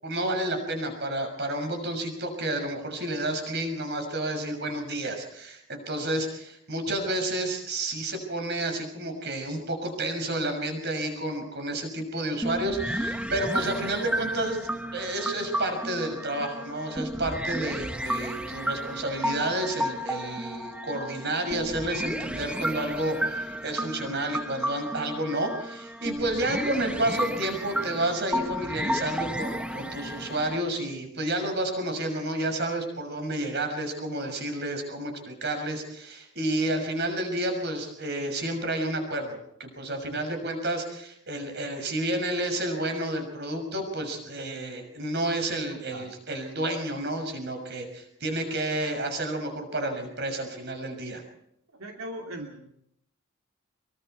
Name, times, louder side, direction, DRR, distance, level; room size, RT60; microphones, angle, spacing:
voice 1, 0.0-51.2, right 1 dB, 50° right, 5 dB, 6.4 m, -30 dB
sound 1, 12.4-30.6, equal, 5° right, 1.0 m, -32 dB
voice 2, 45.4-46.1 51.7-52.7, right 1 dB, 85° right, 1 dB, 2.9 m, -40 dB
25.0 x 23.5 x 4.7 m, 0.74 s
head